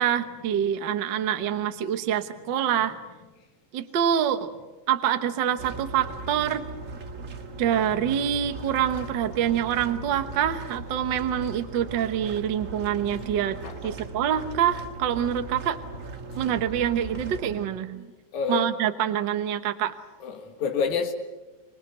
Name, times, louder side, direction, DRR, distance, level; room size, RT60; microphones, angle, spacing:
voice 1, 0.0-3.0 3.7-4.5 4.9-6.6 7.6-13.6 13.8-15.8 16.4-18.1 18.5-19.9, right 9 dB, 55° right, 1.4 m, -26 dB
sound 1, 5.6-17.7, right 3 dB, 40° right, 1.2 m, -38 dB
voice 2, 13.6-13.9 18.3-18.7 20.2-21.1, left 6 dB, 80° left, 3.1 m, -28 dB
26.0 x 20.0 x 8.0 m
omnidirectional pair, 3.4 m